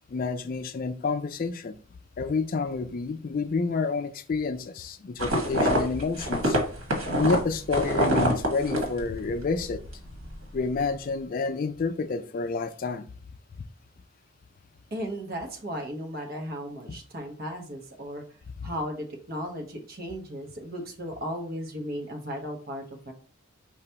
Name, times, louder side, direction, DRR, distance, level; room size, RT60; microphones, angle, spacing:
voice 1, 0.1-1.7 2.2-6.6 7.2-9.8 10.5-13.0, left 4 dB, 45° left, 11 dB, 0.3 m, -29 dB
sound 1, 5.2-9.5 9.8-10.3, equal, 85° right, 1.4 m, -26 dB
voice 2, 14.9-18.2 18.6-23.1, equal, 45° right, 3 dB, 1.0 m, -35 dB
4.9 x 3.4 x 2.8 m, 0.40 s
head